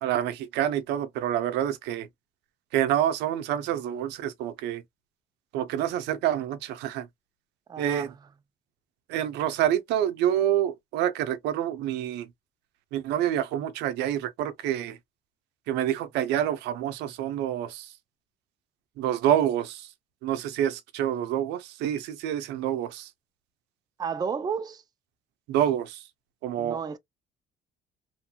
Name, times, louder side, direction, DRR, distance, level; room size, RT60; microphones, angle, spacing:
voice 1, 0.0-2.1 2.7-4.8 5.5-7.1 7.8-8.1 9.1-12.3 12.9-15.0 15.7-17.9 19.0-19.9 20.2-23.1 25.5-26.0 26.4-26.8, right 11 dB, 90° right, 0.6 m, -27 dB
voice 2, 7.7-8.2 24.0-24.8 26.6-27.0, right 6 dB, 25° right, 0.4 m, -32 dB
3.1 x 2.7 x 2.2 m
cardioid pair, 110°, 17 cm